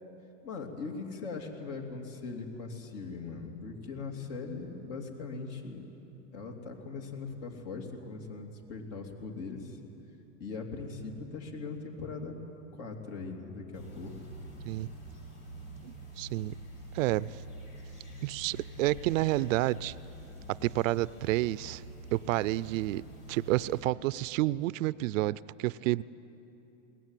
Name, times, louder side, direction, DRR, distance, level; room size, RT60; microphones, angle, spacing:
voice 1, 0.4-5.9 6.3-9.8 10.4-12.3 12.7-14.1, left 4 dB, 65° left, 2 dB, 3.2 m, -40 dB
sound 1, 13.7-23.8, right 1 dB, 90° left, 6.3 m, -46 dB
voice 2, 15.8-16.6 16.9-17.3 18.2-19.9 20.6-21.8 22.1-23.0 23.3-26.0, right 17 dB, 80° right, 19 dB, 0.5 m, -29 dB
21.5 x 18.0 x 9.1 m, 3.0 s
supercardioid pair, 120°, 39 cm